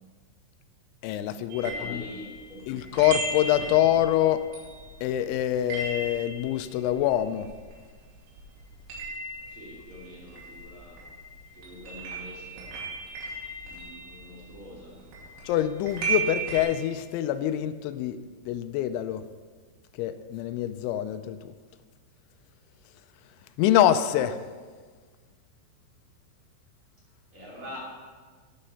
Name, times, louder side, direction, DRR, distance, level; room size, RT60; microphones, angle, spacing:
voice 1, 1.0-2.1 2.7-4.4 5.0-7.5 15.5-18.2 18.5-19.2 20.0-21.5 23.6-24.4, left 12 dB, 85° left, 10 dB, 2.8 m, -25 dB
sound 1, 1.5-8.1 8.4-16.6, right 3 dB, 70° right, 4.8 m, -36 dB
voice 2, 1.6-2.8 9.5-11.0 11.5-12.7 13.6-15.0 27.3-27.8, equal, 35° right, -5 dB, 2.6 m, -44 dB
9.9 x 9.6 x 5.7 m, 1.5 s
omnidirectional pair, 5.7 m